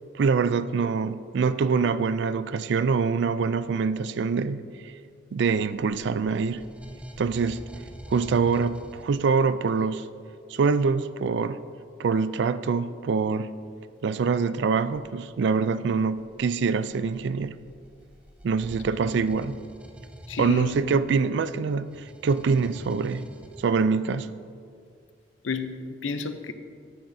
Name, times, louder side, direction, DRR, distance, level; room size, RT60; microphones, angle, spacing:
voice 1, 0.1-4.9 5.3-6.6 7.2-7.6 8.1-10.1 10.5-11.6 12.0-13.5 14.0-17.5 18.4-19.6 20.4-23.3 23.6-24.3, right 5 dB, 65° right, 14 dB, 0.4 m, -25 dB
sound 1, 5.6-9.5 14.8-15.1 15.9-23.6, equal, 5° right, 0.6 m, -46 dB
voice 2, 20.3-21.1 25.4-26.5, left 5 dB, 80° left, 9 dB, 0.6 m, -32 dB
14.5 x 8.8 x 2.7 m, 2.2 s
head